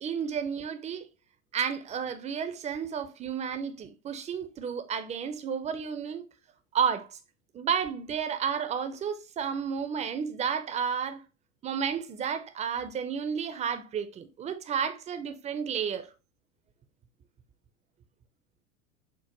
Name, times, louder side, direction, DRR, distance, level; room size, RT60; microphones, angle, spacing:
voice 1, 0.0-1.1 1.5-6.3 6.7-7.1 7.5-11.2 11.6-16.1, right 7 dB, 20° right, 0.4 m, -31 dB
5.9 x 2.1 x 2.9 m
figure-of-eight pair, 80°, 38 cm